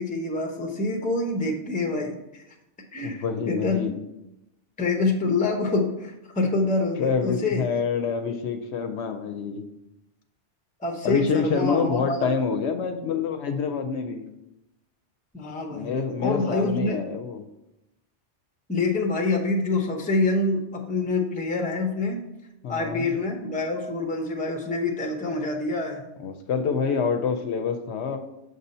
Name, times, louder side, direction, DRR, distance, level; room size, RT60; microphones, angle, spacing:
voice 1, 0.0-2.4 2.9-3.9 4.8-7.7 10.8-12.2 15.3-15.9 16.2-17.0 18.7-22.2 22.7-26.0, left 3 dB, 10° left, 2 dB, 0.5 m, -26 dB
voice 2, 3.0-4.0 7.0-9.6 11.0-14.3 15.7-17.5 22.6-23.1 26.2-28.2, left 5 dB, 70° left, 7 dB, 0.8 m, -27 dB
6.4 x 2.7 x 5.3 m, 0.89 s
omnidirectional pair, 1.2 m